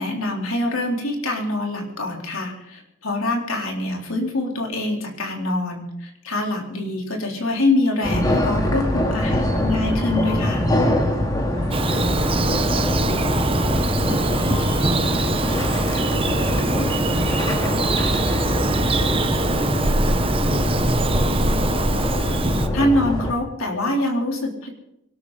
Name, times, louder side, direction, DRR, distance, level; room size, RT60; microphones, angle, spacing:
voice 1, 0.0-10.7 22.7-24.7, left 1 dB, 70° left, 1 dB, 3.8 m, -24 dB
sound 1, 8.0-23.3, left 1 dB, 15° left, 2.2 m, -23 dB
voice 2, 9.3-10.0 11.5-20.7, right 1 dB, 75° right, 4 dB, 2.6 m, -39 dB
Bird vocalization bird call bird song, 11.7-22.7, right 2 dB, 25° right, 1.0 m, -23 dB
24.5 x 12.5 x 4.1 m, 0.81 s
head